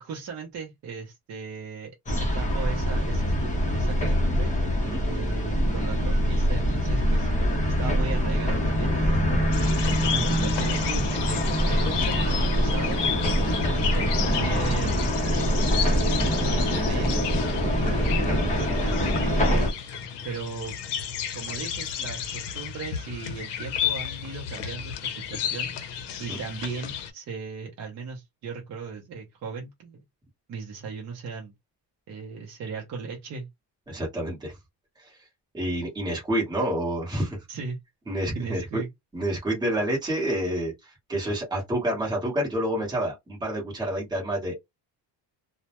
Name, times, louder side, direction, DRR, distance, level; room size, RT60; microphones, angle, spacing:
voice 1, 0.0-4.5 5.0-7.3 7.7-11.4 11.7-13.0 13.7-15.0 16.3-17.3 17.8-19.7 20.2-20.8 21.3-25.7 26.2-30.0 30.5-31.5 32.1-33.5 37.5-37.8 38.3-38.9, right 5 dB, 40° right, 0.5 m, -37 dB
sound 1, 2.1-19.7, equal, 20° left, 0.6 m, -24 dB
sound 2, 9.5-27.1, left 8 dB, 70° left, 0.6 m, -33 dB
voice 2, 33.9-34.5 35.5-37.4 38.1-38.8 39.1-44.6, right 1 dB, 10° right, 0.9 m, -28 dB
2.1 x 2.1 x 2.8 m
cardioid pair, 175°, 43 cm